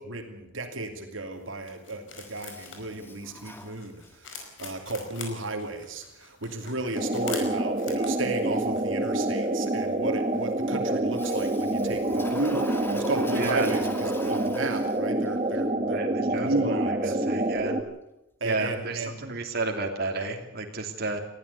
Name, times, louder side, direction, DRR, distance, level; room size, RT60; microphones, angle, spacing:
voice 1, 0.0-17.2 18.4-19.2, right 2 dB, 75° right, 5 dB, 2.8 m, -34 dB
sound 1, 1.3-14.2, left 5 dB, 65° left, 5.0 m, -47 dB
Toilet flush, 2.1-4.4 11.1-15.3, left 1 dB, 10° left, 2.0 m, -43 dB
sound 2, 6.9-17.8, right 1 dB, 30° right, 1.9 m, -27 dB
voice 2, 13.3-13.7 15.9-17.8 18.4-21.2, right 3 dB, 50° right, 2 dB, 2.8 m, -32 dB
21.0 x 15.0 x 8.4 m, 0.87 s
head